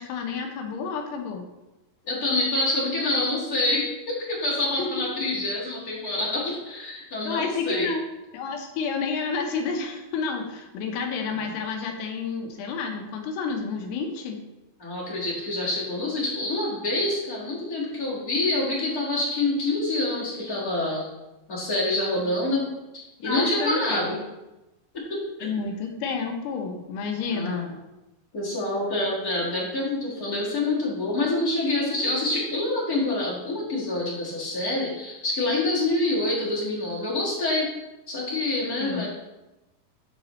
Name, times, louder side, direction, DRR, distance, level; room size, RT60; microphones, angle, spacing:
voice 1, 0.0-1.5 4.8-4.9 7.2-8.1 8.3-14.4 23.2-24.1 25.4-27.7 38.8-39.0, left 5 dB, 80° left, 3 dB, 3.0 m, -30 dB
voice 2, 2.0-7.9 11.3-11.5 14.8-21.1 21.5-22.7 22.9-24.2 24.9-25.5 27.3-27.7 28.3-37.7 38.1-39.1, left 2 dB, 65° left, -7 dB, 0.9 m, -26 dB
12.0 x 4.9 x 3.1 m, 0.99 s
omnidirectional pair, 4.8 m